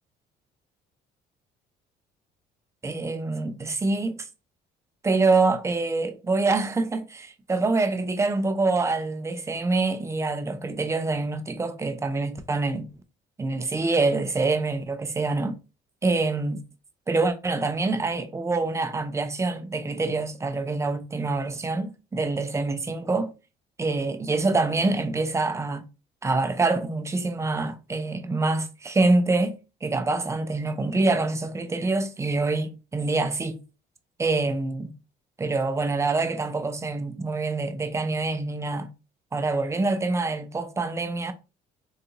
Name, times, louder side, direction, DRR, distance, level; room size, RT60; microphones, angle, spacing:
voice 1, 2.8-4.3 5.0-12.9 13.4-15.6 16.0-16.6 17.1-23.3 23.8-25.8 26.2-33.6 34.2-34.9 35.4-38.9 39.3-41.3, right 3 dB, 15° right, 0.4 m, -25 dB
3.8 x 2.4 x 2.7 m
cardioid pair, 110°, 17 cm